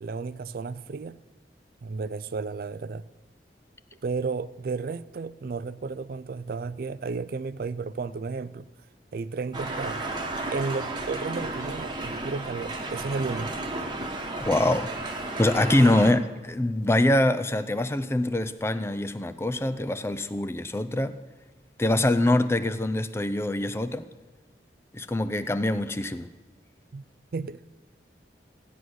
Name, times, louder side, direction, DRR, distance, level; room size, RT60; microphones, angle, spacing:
voice 1, 0.0-1.2 1.8-3.0 4.0-8.7 9.1-10.1 10.5-13.6 15.9-16.1 26.9-27.0 27.3-27.7, right 4 dB, 55° right, 0.4 m, -33 dB
sound 1, 9.5-16.1, right 2 dB, 25° right, 1.2 m, -33 dB
voice 2, 14.4-14.9 15.4-21.2 21.8-24.1 24.9-26.3, left 1 dB, 15° left, 0.5 m, -24 dB
15.5 x 9.5 x 6.2 m
head